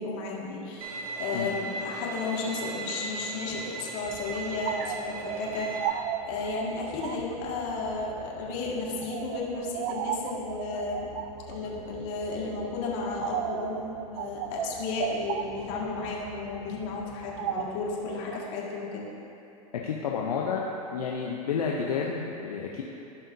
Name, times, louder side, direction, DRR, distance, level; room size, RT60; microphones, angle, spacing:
voice 1, 0.0-6.0 6.2-11.1 11.5-19.0, left 3 dB, 55° left, -4 dB, 2.0 m, -33 dB
Bowed string instrument, 0.8-5.9, right 3 dB, 70° right, 1.2 m, -37 dB
sound 1, 4.0-18.4, right 9 dB, 50° right, 0.5 m, -37 dB
voice 2, 19.8-20.7 20.9-22.8, left 6 dB, 80° left, -2 dB, 0.8 m, -30 dB
16.5 x 5.6 x 2.7 m, 2.9 s
hypercardioid pair, 95°, 19 cm